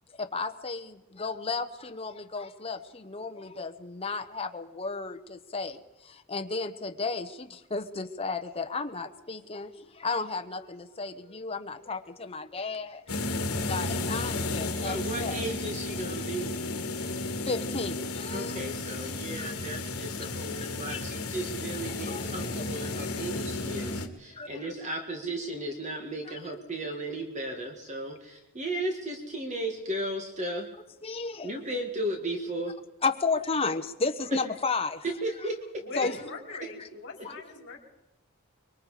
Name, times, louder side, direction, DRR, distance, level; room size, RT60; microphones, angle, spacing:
voice 1, 0.2-15.4 17.0-17.2 17.4-18.6 19.4-19.5 20.6-21.0 21.8-22.3 23.8-23.9 24.3-24.7 26.3-26.4 31.0-31.5 33.0-35.0 36.0-36.2 36.5-36.9 37.2-37.3, left 4 dB, 25° left, 6 dB, 1.1 m, -34 dB
sound 1, 13.1-24.1, left 2 dB, 75° left, 1.8 m, -33 dB
voice 2, 14.8-16.5 18.3-30.7 31.4-32.7 35.2-35.8 36.9-37.0 37.3-37.4, right 1 dB, 35° right, 3 dB, 1.9 m, -35 dB
voice 3, 35.8-37.8, left 4 dB, 50° left, 0 dB, 4.9 m, -41 dB
24.5 x 22.5 x 5.0 m, 1.0 s
head